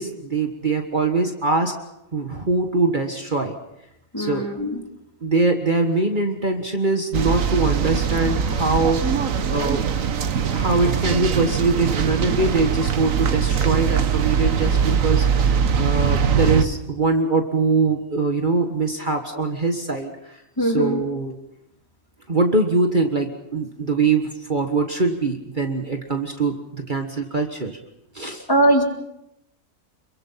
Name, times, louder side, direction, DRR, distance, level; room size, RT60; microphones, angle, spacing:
voice 1, 0.0-1.7 2.1-3.5 4.2-4.5 5.2-9.9 10.5-21.3 22.3-27.8 28.1-28.4, right 3 dB, 35° right, 4 dB, 1.7 m, -23 dB
voice 2, 4.1-4.8 20.6-21.0 28.5-28.8, right 1 dB, 15° left, 2 dB, 2.7 m, -20 dB
sound 1, 7.1-16.7, right 7 dB, 75° right, 1.5 m, -21 dB
27.5 x 22.5 x 5.8 m, 0.85 s
omnidirectional pair, 1.4 m